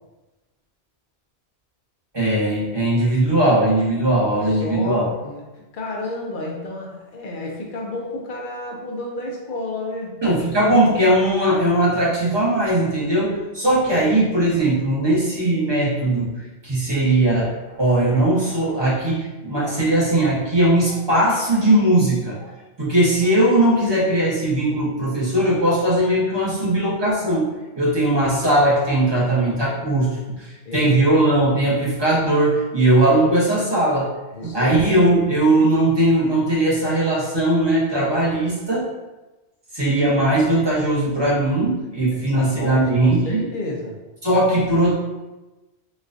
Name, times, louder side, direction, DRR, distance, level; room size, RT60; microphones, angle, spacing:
voice 1, 2.1-5.1 10.2-22.5 22.8-27.5 27.8-34.1 34.4-38.9 39.7-43.5 44.2-44.9, right 1 dB, 25° right, -6 dB, 0.9 m, -19 dB
voice 2, 4.5-5.4 5.7-10.2 30.6-31.0 34.3-34.8 42.0-44.0, left 2 dB, 55° left, -1 dB, 0.7 m, -31 dB
4.1 x 2.3 x 2.5 m, 1.1 s
omnidirectional pair, 1.1 m